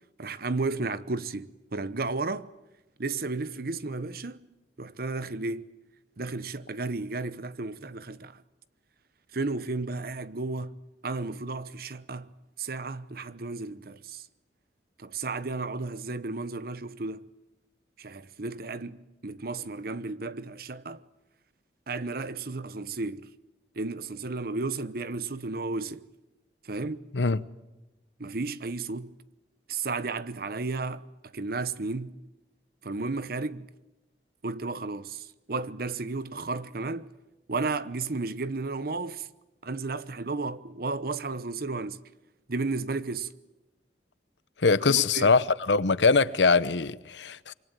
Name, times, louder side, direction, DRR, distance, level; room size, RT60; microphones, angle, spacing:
voice 1, 0.2-2.5 3.0-4.4 4.8-5.7 6.2-8.4 9.3-10.8 11.0-12.3 12.6-14.2 15.0-17.3 18.0-21.0 21.9-23.3 23.8-26.1 26.6-27.1 28.2-29.1 29.7-31.0 31.3-32.2 32.8-33.7 34.4-37.1 37.5-39.3 39.6-42.0 42.5-43.3 44.9-45.4, right 3 dB, 55° right, 1.0 m, -33 dB
voice 2, 44.6-47.5, left 4 dB, 85° left, 0.9 m, -22 dB
26.0 x 24.0 x 9.1 m
head